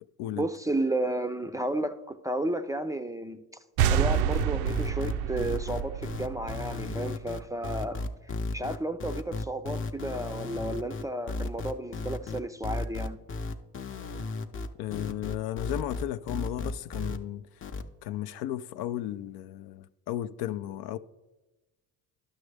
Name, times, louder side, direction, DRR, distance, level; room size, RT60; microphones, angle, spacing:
voice 1, 0.3-3.4 3.9-8.0 8.5-13.2, right 1 dB, 10° right, 0.4 m, -32 dB
sound 1, 3.8-7.3, right 9 dB, 75° right, 0.5 m, -28 dB
sound 2, 4.1-17.2 17.6-17.8, left 3 dB, 30° left, 0.7 m, -34 dB
voice 2, 14.8-17.5 18.0-21.0, left 13 dB, 70° left, 0.5 m, -34 dB
11.0 x 6.3 x 3.3 m
supercardioid pair, 70°, 39 cm